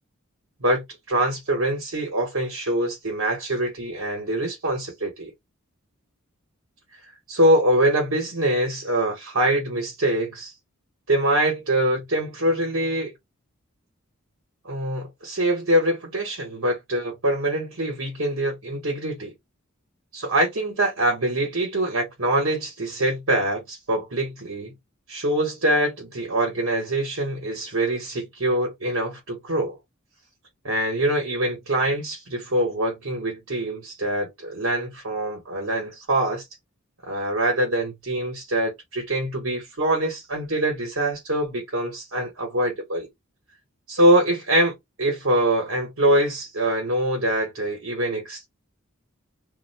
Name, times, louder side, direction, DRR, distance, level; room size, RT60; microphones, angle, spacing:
voice 1, 0.6-5.3 7.3-10.5 11.1-13.1 14.6-19.3 20.1-24.7 25.1-29.8 30.6-36.4 37.0-43.1 43.9-48.5, right 1 dB, 75° right, 1.3 m, -24 dB
2.7 x 2.1 x 4.1 m
head